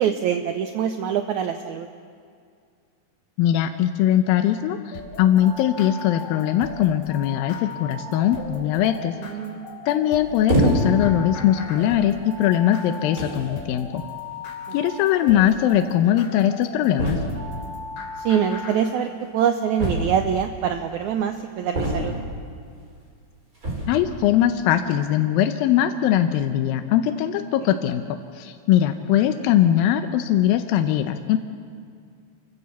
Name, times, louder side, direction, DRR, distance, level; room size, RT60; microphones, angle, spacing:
voice 1, 0.0-1.9 9.2-9.8 13.0-13.1 18.2-22.1, right 8 dB, 75° right, 7 dB, 1.8 m, -24 dB
voice 2, 3.4-9.1 9.9-14.0 14.7-17.2 23.9-31.4, left 11 dB, 85° left, 7 dB, 2.5 m, -21 dB
sound 1, 4.9-18.8, left 3 dB, 50° left, 3.8 m, -38 dB
sound 2, 10.5-11.1 11.9-12.0 12.8-12.9 13.2-13.5 14.7-14.8 15.0-15.1 15.3-15.4 17.0-17.5 19.8-20.4 21.7-22.4 23.5-24.0, right 1 dB, 20° right, 4.7 m, -24 dB
27.5 x 15.5 x 7.1 m, 2.2 s
omnidirectional pair, 4.1 m